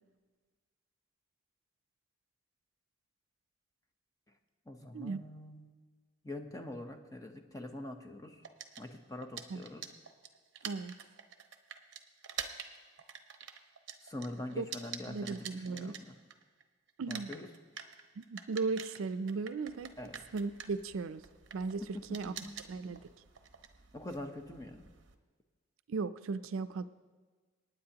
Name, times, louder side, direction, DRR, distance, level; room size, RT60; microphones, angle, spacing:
voice 1, 4.6-5.7 6.2-8.4 8.8-9.9 14.0-16.2 17.1-17.5 20.0-20.2 21.8-22.6 23.9-24.9, left 1 dB, 15° left, 5 dB, 0.8 m, -44 dB
sound 1, 8.4-16.6 16.9-25.1, right 8 dB, 55° right, 0.9 m, -47 dB
voice 2, 10.6-10.9 14.6-14.7 15.1-16.0 17.0-17.3 18.2-20.0 20.3-21.2 21.5-22.3 22.7-23.1 25.9-26.8, right 4 dB, 70° right, 12 dB, 0.4 m, -36 dB
27.5 x 9.4 x 2.9 m, 1.5 s
head